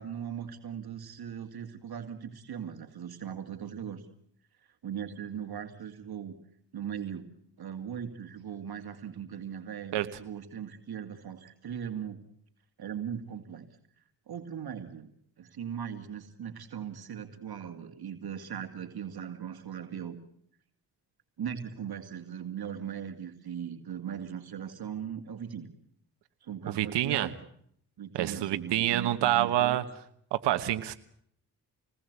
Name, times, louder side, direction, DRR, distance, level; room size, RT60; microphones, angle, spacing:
voice 1, 0.0-4.0 4.6-6.3 6.7-7.3 7.6-12.2 12.8-13.7 14.3-15.1 15.4-20.2 21.4-25.7 26.4-27.3 28.0-29.8, right 8 dB, 65° right, 6 dB, 2.3 m, -39 dB
voice 2, 26.7-27.3 28.1-29.8 30.3-30.9, right 13 dB, 85° right, 9 dB, 1.2 m, -27 dB
27.5 x 20.0 x 8.2 m, 0.68 s
supercardioid pair, 45°, 40 cm